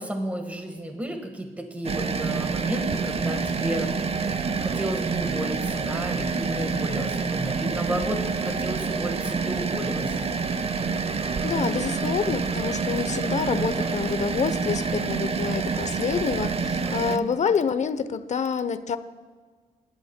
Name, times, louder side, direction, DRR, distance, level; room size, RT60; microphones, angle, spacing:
voice 1, 0.0-10.2 16.8-17.3, right 1 dB, 10° right, 4 dB, 1.4 m, -33 dB
sound 1, 1.8-17.2, right 5 dB, 40° right, 0.6 m, -27 dB
voice 2, 11.4-19.0, left 6 dB, 50° left, 12 dB, 0.7 m, -27 dB
20.5 x 10.5 x 2.2 m, 1.5 s
cardioid pair, 75°, 16 cm